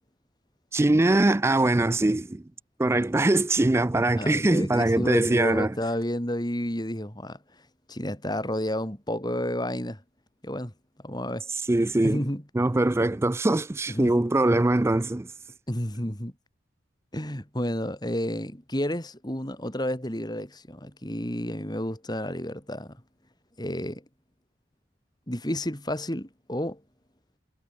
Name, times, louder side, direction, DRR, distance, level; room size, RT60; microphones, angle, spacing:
voice 1, 0.7-2.4 2.8-5.7 11.7-12.2 12.5-15.3, right 2 dB, 15° right, 0.3 m, -22 dB
voice 2, 4.2-7.4 7.9-10.0 10.4-10.7 11.0-11.5 12.0-12.4 13.9-14.3 15.7-16.3 17.1-23.0 23.6-24.0 25.3-26.8, left 1 dB, 20° left, 4.0 m, -31 dB
head